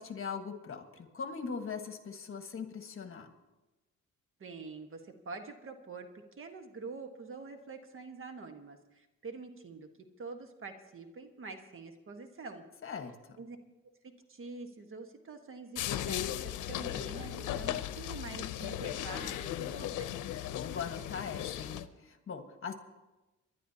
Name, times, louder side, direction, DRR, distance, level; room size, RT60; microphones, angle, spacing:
voice 1, 0.0-3.3 12.8-13.4 20.5-22.7, left 6 dB, 45° left, 7 dB, 1.4 m, -41 dB
voice 2, 4.4-6.1 6.4-9.9 10.2-12.6 13.4-13.6 14.3-20.2, right 4 dB, 45° right, 6 dB, 1.4 m, -46 dB
sound 1, 15.8-21.9, left 12 dB, 85° left, 0.7 m, -37 dB
26.0 x 11.5 x 2.8 m, 1.1 s
cardioid pair, 90°, 30 cm